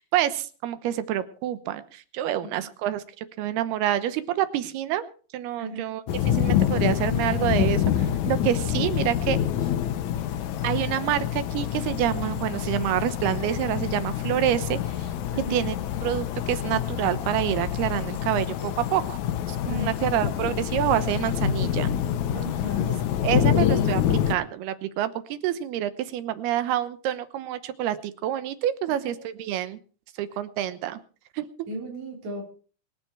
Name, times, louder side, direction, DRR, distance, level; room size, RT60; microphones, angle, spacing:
voice 1, 0.0-5.1 5.3-6.0 6.3-9.4 10.6-15.1 15.5-15.7 16.0-19.2 19.5-21.9 23.2-29.8 30.2-31.0 31.4-31.7, right 12 dB, 90° right, 13 dB, 3.0 m, -27 dB
sound 1, 6.1-24.3, left 10 dB, 65° left, 2.0 m, -26 dB
voice 2, 15.3-15.6 19.6-19.9 20.4-20.6 22.3-23.0 28.9-29.1 31.7-32.4, equal, 45° right, -2 dB, 5.1 m, -35 dB
25.0 x 9.0 x 4.5 m, 0.40 s
omnidirectional pair, 4.5 m